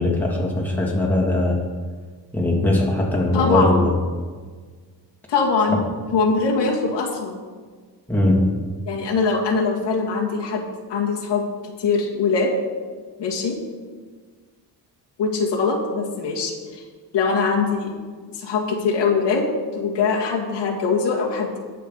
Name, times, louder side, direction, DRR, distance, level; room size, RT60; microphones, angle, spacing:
voice 1, 0.0-1.6 2.3-3.9 8.1-8.5, left 1 dB, 5° left, -3 dB, 2.4 m, -20 dB
voice 2, 3.3-3.8 5.3-5.8 6.1-7.4 8.9-12.5 13.2-13.6 15.2-16.8 17.1-17.9 18.3-21.6, left 4 dB, 85° left, -1 dB, 2.0 m, -22 dB
18.5 x 6.7 x 4.0 m, 1.5 s
cardioid pair, 125°, 42 cm